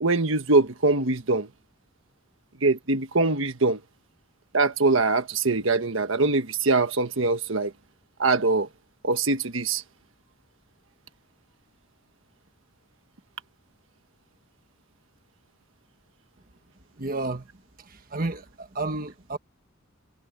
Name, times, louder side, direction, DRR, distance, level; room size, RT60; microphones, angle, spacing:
voice 1, 0.0-1.5 2.6-3.8 4.5-7.7 8.2-8.7 9.0-9.8, right 3 dB, 70° right, 1.4 m, -23 dB
voice 2, 16.9-19.4, right 2 dB, 45° right, 1.4 m, -32 dB
head